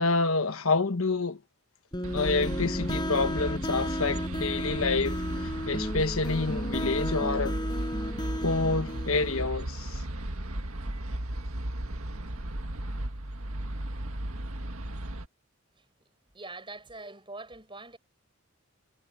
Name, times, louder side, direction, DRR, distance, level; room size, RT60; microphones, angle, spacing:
voice 1, 0.0-1.4 2.1-5.2 5.7-7.6 8.4-10.0, left 3 dB, 75° left, 1.3 m, -28 dB
sound 1, 1.9-9.5, equal, 20° left, 7.6 m, -33 dB
sound 2, 2.0-15.3, right 1 dB, 80° right, 1.8 m, -35 dB
voice 2, 16.3-18.0, right 3 dB, 25° right, 7.0 m, -43 dB
head